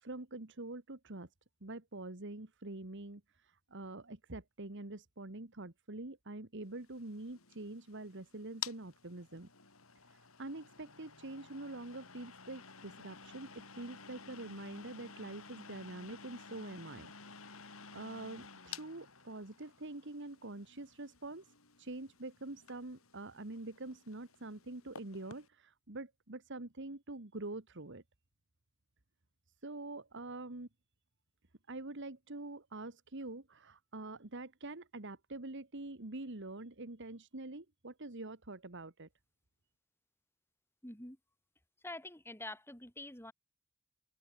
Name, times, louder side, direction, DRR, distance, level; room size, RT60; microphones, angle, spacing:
voice 1, 0.0-1.3 1.6-3.2 3.7-9.5 10.4-17.1 17.9-21.4 21.8-28.0 29.6-30.7 31.7-39.1, right 2 dB, 60° right, 1.9 m, -45 dB
sound 1, 6.8-25.5, left 7 dB, 75° left, 7.7 m, -52 dB
voice 2, 40.8-41.2 41.8-43.3, left 2 dB, 10° left, 5.6 m, -46 dB
open air
head